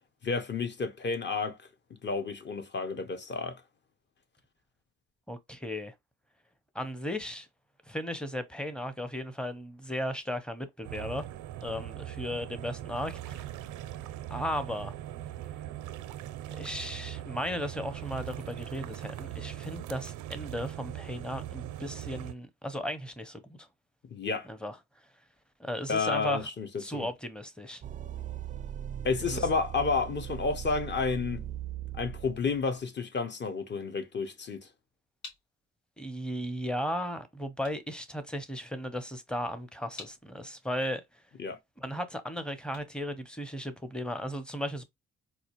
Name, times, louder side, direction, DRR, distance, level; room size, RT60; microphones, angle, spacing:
voice 1, 0.2-1.6 2.0-3.6 24.1-24.5 25.9-27.1 29.0-31.4 31.9-34.7 41.4-41.6, left 4 dB, 35° left, 0.8 m, -31 dB
voice 2, 5.3-5.9 6.7-7.5 7.9-11.3 11.6-13.5 14.3-14.9 16.5-23.7 24.5-24.8 25.6-26.5 26.8-27.8 29.3-29.4 36.0-41.0 41.8-44.8, equal, 5° left, 0.7 m, -36 dB
sound 1, 10.8-22.3, right 12 dB, 85° right, 0.5 m, -40 dB
sound 2, 27.8-32.7, right 10 dB, 25° right, 0.4 m, -39 dB
sound 3, 35.2-44.0, left 3 dB, 70° left, 2.5 m, -54 dB
4.1 x 2.4 x 2.9 m
cardioid pair, 90°, 30 cm